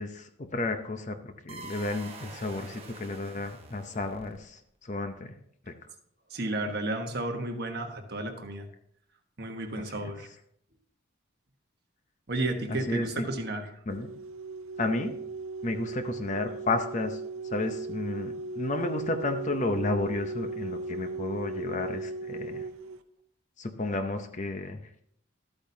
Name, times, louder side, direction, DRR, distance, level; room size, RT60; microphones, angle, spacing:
voice 1, 0.0-5.3 5.7-5.8 9.7-10.1 12.7-13.2 13.9-14.1 14.8-15.2 15.6-17.2 17.5-22.6 23.6-25.0, left 2 dB, 35° left, 7 dB, 0.7 m, -32 dB
sound 1, 1.5-4.6, right 3 dB, 30° right, 1.0 m, -46 dB
voice 2, 6.3-8.6 9.4-10.3 12.3-13.7, right 2 dB, 50° right, 4 dB, 1.3 m, -32 dB
sound 2, 13.9-23.0, right 3 dB, 80° right, 0.7 m, -37 dB
12.5 x 8.6 x 2.7 m, 0.69 s
head